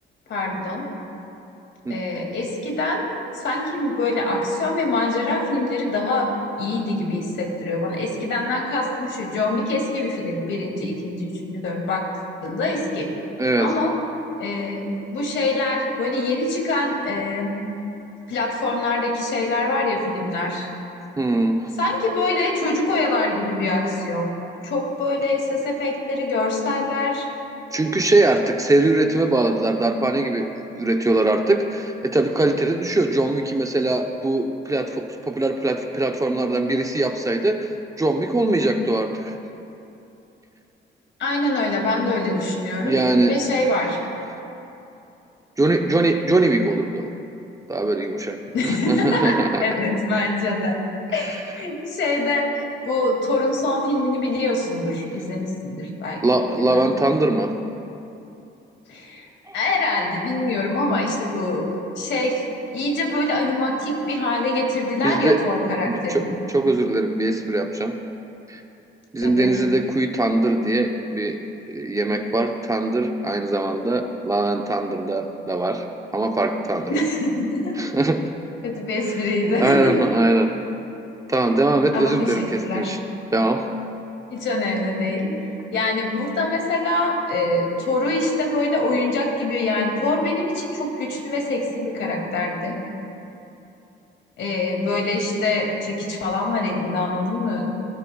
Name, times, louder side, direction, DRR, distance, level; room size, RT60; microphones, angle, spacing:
voice 1, 0.3-0.9 1.9-6.3 6.6-12.1 12.4-13.1 13.6-13.9 14.4-17.6 18.3-20.7 21.8-24.3 24.6-27.2 41.2-43.0 43.2-44.0 48.5-50.8 51.1-52.5 52.8-56.9 58.9-59.3 59.5-61.6 62.0-62.4 62.7-66.5 69.2-69.6 76.9-77.8 78.6-80.1 81.9-82.9 84.3-85.3 85.7-92.8 94.4-97.6, left 2 dB, 70° left, 0 dB, 2.4 m, -24 dB
voice 2, 13.4-13.7 21.2-21.7 27.7-37.7 38.0-39.3 42.8-43.4 45.6-47.1 47.7-48.4 48.6-49.7 51.1-51.4 56.2-57.5 59.5-59.6 65.0-65.4 65.9-66.2 66.5-68.0 68.5-68.6 69.1-71.4 71.7-75.8 76.1-77.0 77.8-78.2 79.1-79.2 79.6-80.5 81.3-83.0 83.3-83.7, right 2 dB, 15° right, 4 dB, 0.7 m, -21 dB
18.0 x 12.5 x 2.3 m, 2.8 s
cardioid pair, 90°, 20 cm